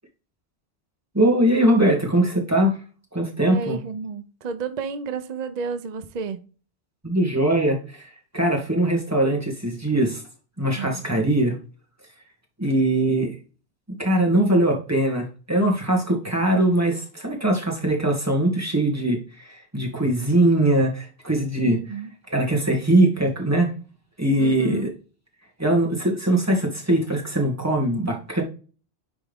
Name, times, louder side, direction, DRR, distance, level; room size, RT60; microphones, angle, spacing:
voice 1, 1.1-2.8 3.1-3.8 7.0-10.2 10.6-11.6 12.6-13.3 14.0-21.8 22.3-23.7 24.2-24.9 25.6-28.4, right 1 dB, 15° right, -1 dB, 1.8 m, -21 dB
voice 2, 3.4-6.4 10.7-11.1 21.6-22.1 24.4-24.9, right 5 dB, 45° right, 9 dB, 0.7 m, -31 dB
10.0 x 3.6 x 3.5 m, 0.37 s
omnidirectional pair, 1.1 m